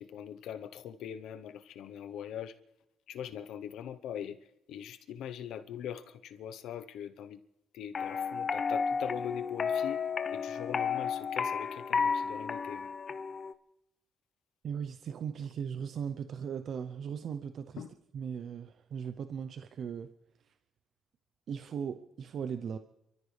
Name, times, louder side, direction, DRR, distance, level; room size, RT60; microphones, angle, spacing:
voice 1, 0.0-2.5 3.1-4.4 4.7-7.4 7.7-10.0 10.3-12.9 17.8-17.9, left 9 dB, 80° left, 10 dB, 0.9 m, -42 dB
sound 1, 7.9-13.5, left 6 dB, 45° left, 0.6 m, -32 dB
voice 2, 14.6-17.8 18.1-20.1 21.5-22.8, right 7 dB, 60° right, 10 dB, 0.7 m, -38 dB
28.5 x 13.5 x 3.4 m, 0.87 s
cardioid pair, 90°, 0 cm